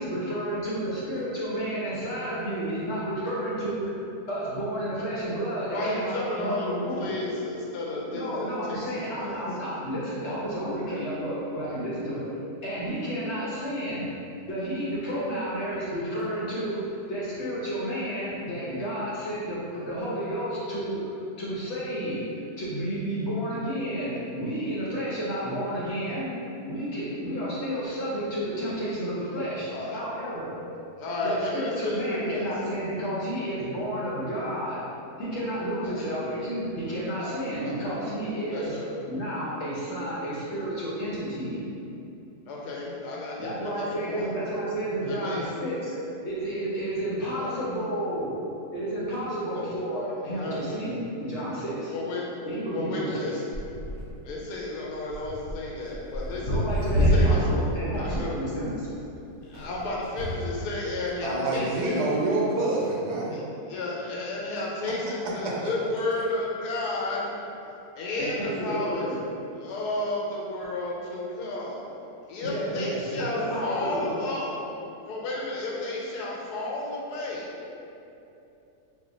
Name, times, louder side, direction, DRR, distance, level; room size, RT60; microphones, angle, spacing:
voice 1, 0.0-3.9 4.3-7.1 8.1-12.2 12.6-14.1 14.5-22.2 22.6-26.3 26.6-30.5 31.2-34.8 35.2-38.8 39.1-41.6 43.4-46.0 46.2-48.3 48.7-51.9 52.5-53.3 56.4-58.9 68.2-69.2 72.4-74.2, right 1 dB, 60° left, -8 dB, 0.7 m, -31 dB
voice 2, 5.7-9.4 29.7-30.0 31.0-32.5 35.8-36.2 37.2-37.3 37.6-37.7 38.5-38.9 42.5-44.3 45.0-45.5 47.3-47.6 50.4-50.6 51.9-52.3 52.7-53.4 54.2-56.6 57.0-57.6 58.0-58.3 59.5-62.0 63.3-67.3 68.0-69.1 69.6-71.8 72.3-73.4 73.6-74.5 74.7-77.5, left 2 dB, 90° left, -4 dB, 1.2 m, -32 dB
sound 1, 53.5-54.3 55.1-57.6 57.9-58.4 59.5-60.7 61.5-61.6, equal, 60° right, 0.9 m, -26 dB
voice 3, 61.2-63.4, right 2 dB, 80° right, -4 dB, 1.2 m, -26 dB
2.7 x 2.2 x 3.7 m, 2.8 s
omnidirectional pair, 1.7 m